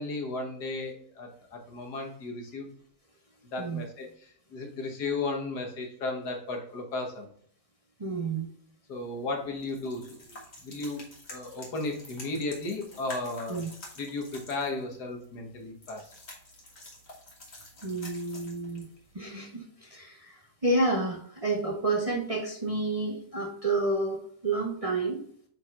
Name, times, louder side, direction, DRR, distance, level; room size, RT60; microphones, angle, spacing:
voice 1, 0.0-2.7 3.5-7.3 8.9-11.0 11.3-13.6 14.0-16.1, left 3 dB, 75° left, 2 dB, 2.0 m, -35 dB
voice 2, 8.0-8.5 13.5-13.7 17.8-18.9 19.1-24.2 24.4-25.2, right 2 dB, 25° right, 0 dB, 0.9 m, -30 dB
sound 1, 8.9-19.2, left 1 dB, 40° left, 2.1 m, -48 dB
8.8 x 4.6 x 2.5 m, 0.62 s
omnidirectional pair, 1.7 m